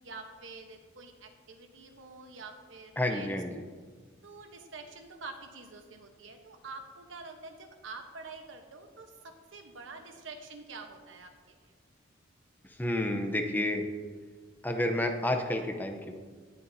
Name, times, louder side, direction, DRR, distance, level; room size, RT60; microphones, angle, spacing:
voice 1, 0.0-3.4 4.2-11.3 11.6-11.7, right 3 dB, 70° right, 5 dB, 1.0 m, -47 dB
voice 2, 3.0-3.6 12.6-13.9 14.6-16.2, left 1 dB, 10° left, 4 dB, 0.7 m, -30 dB
18.5 x 6.8 x 2.7 m, 1.5 s
head